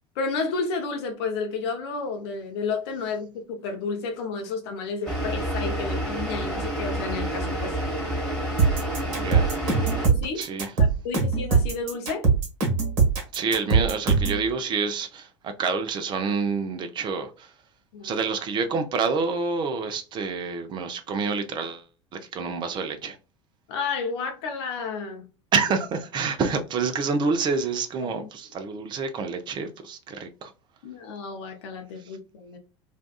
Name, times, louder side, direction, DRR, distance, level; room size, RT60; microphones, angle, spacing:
voice 1, 0.2-7.8 10.0-10.5 10.8-12.3 17.9-18.2 23.7-25.3 28.2-28.3 30.8-32.6, left 4 dB, 60° left, 0.6 m, -31 dB
sound 1, 5.1-10.1, right 1 dB, 5° left, 1.3 m, -29 dB
sound 2, 8.6-14.4, right 5 dB, 50° right, 1.1 m, -21 dB
voice 2, 9.1-9.6 10.4-10.7 13.3-17.5 18.0-21.8 22.1-23.2 25.5-30.5, right 5 dB, 30° right, 0.5 m, -28 dB
2.6 x 2.3 x 2.2 m
figure-of-eight pair, 75°, 15 cm